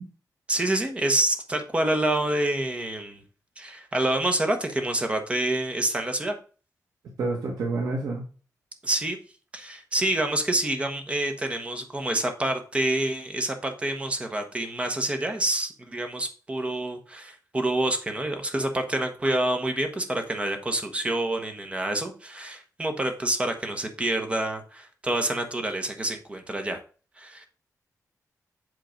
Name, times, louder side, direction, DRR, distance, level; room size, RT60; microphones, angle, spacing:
voice 1, 0.5-3.2 3.6-6.3 8.8-9.2 9.5-26.8 27.2-27.4, right 1 dB, 20° right, 6 dB, 1.1 m, -27 dB
voice 2, 7.2-8.3, right 3 dB, 70° right, -1 dB, 1.5 m, -28 dB
7.9 x 3.8 x 5.1 m, 0.38 s
wide cardioid pair, 175°, 7 cm